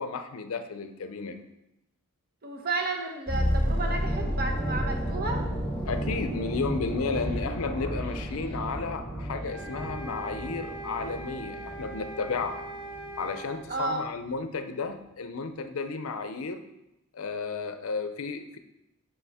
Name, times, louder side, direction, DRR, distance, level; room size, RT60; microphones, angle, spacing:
voice 1, 0.0-1.4 5.9-12.6 13.2-16.6 17.1-18.6, left 4 dB, 70° left, 9 dB, 0.5 m, -33 dB
voice 2, 2.4-5.4 13.7-14.1, right 3 dB, 45° right, 2 dB, 1.0 m, -32 dB
sound 1, 3.3-13.3 13.5-13.7, equal, 5° left, 2.1 m, -32 dB
sound 2, 9.4-13.6, right 1 dB, 75° right, 2.1 m, -41 dB
6.7 x 5.8 x 3.5 m, 0.88 s
head